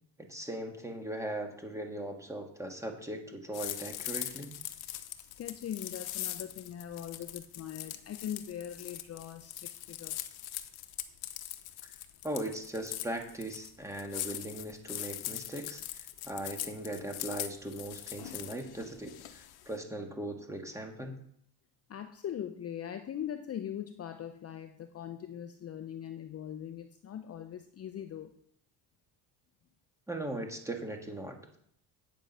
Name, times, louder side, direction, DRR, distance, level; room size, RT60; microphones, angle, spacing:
voice 1, 0.2-4.5 12.2-21.2 30.1-31.6, right 1 dB, 5° right, 3 dB, 1.8 m, -39 dB
sound 1, 3.5-19.8, left 13 dB, 60° left, 1.0 m, -41 dB
voice 2, 5.2-10.2 14.0-14.1 21.9-28.3, left 9 dB, 35° left, 8 dB, 0.7 m, -41 dB
9.3 x 7.3 x 5.5 m, 0.67 s
cardioid pair, 105°, 43 cm